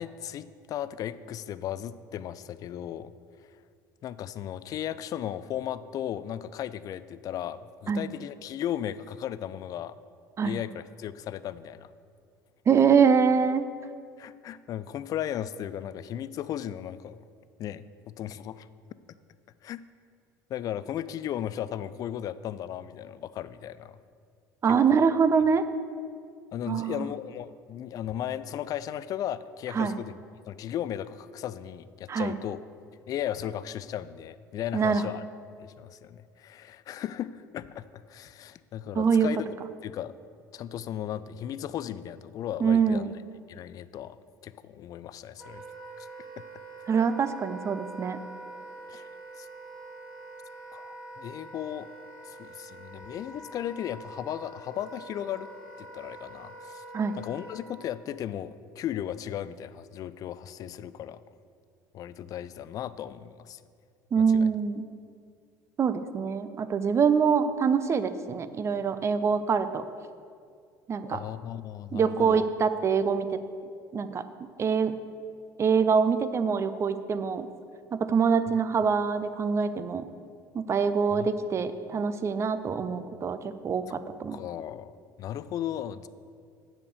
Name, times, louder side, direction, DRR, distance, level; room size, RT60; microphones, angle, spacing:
voice 1, 0.0-3.1 4.0-9.9 10.4-11.9 14.2-17.2 17.6-18.7 19.6-19.8 20.5-24.0 24.9-25.1 26.5-30.2 30.5-32.6 33.1-35.3 35.6-39.5 39.8-40.1 40.5-43.1 43.5-44.2 44.4-45.7 46.0-46.1 48.9-49.1 49.4-49.5 50.7-51.9 52.2-55.5 55.8-56.8 57.2-61.2 61.9-63.6 64.3-64.5 71.0-72.5 81.1-81.3 81.9-82.0 84.3-84.9 85.2-86.1, left 10 dB, 35° left, 15 dB, 0.3 m, -36 dB
voice 2, 12.7-13.6 24.6-25.6 26.7-27.1 29.7-30.0 32.1-32.4 34.7-35.0 39.0-39.3 42.6-43.1 46.9-48.2 56.9-57.1 64.1-64.8 65.8-69.8 70.9-71.2 71.9-73.4 73.9-74.2 74.6-74.9 75.6-77.5 78.0-80.1 80.5-83.4 83.6-84.4, right 6 dB, 30° right, 12 dB, 0.5 m, -24 dB
Wind instrument woodwind instrument, 45.4-57.7, right 2 dB, 10° right, 2.6 m, -45 dB
9.2 x 5.0 x 6.7 m, 2.2 s
figure-of-eight pair, 65°, 10 cm